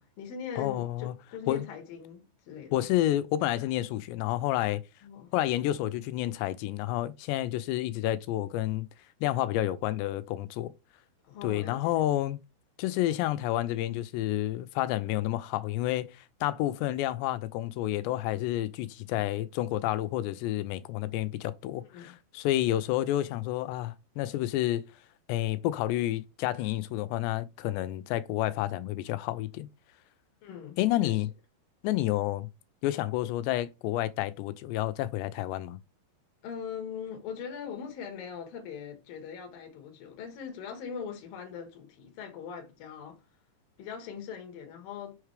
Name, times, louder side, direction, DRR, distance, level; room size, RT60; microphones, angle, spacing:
voice 1, 0.0-2.7 5.0-5.3 11.2-11.9 21.9-22.2 30.4-31.2 36.4-43.2 43.8-45.2, left 7 dB, 65° left, 2.9 m, -41 dB
voice 2, 0.6-1.1 1.5-1.7 2.7-4.8 5.3-8.9 9.2-10.7 11.4-12.4 12.8-16.1 16.4-24.9 25.3-29.7 30.8-31.3 31.8-32.5 32.8-35.8, left 14 dB, 85° left, 2.8 m, -29 dB
6.4 x 4.7 x 3.2 m
omnidirectional pair, 4.8 m